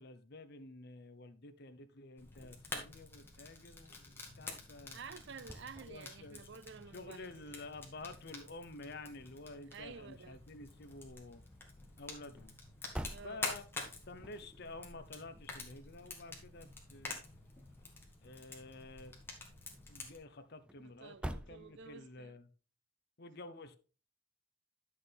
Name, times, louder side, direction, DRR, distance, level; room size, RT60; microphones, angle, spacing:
voice 1, 0.0-5.0 5.9-6.4 6.9-11.4 12.0-12.5 13.2-13.6 14.1-17.2 18.2-19.1 19.9-22.5 23.2-23.8, left 2 dB, 55° left, 0.9 m, -50 dB
Fire, 2.2-20.2, left 3 dB, 10° left, 2.1 m, -48 dB
sound 1, 4.2-22.3, equal, 5° right, 0.4 m, -53 dB
voice 2, 4.9-7.7 9.7-10.4 13.1-13.4 20.8-22.3, right 5 dB, 60° right, 0.5 m, -51 dB
11.0 x 6.5 x 3.5 m
head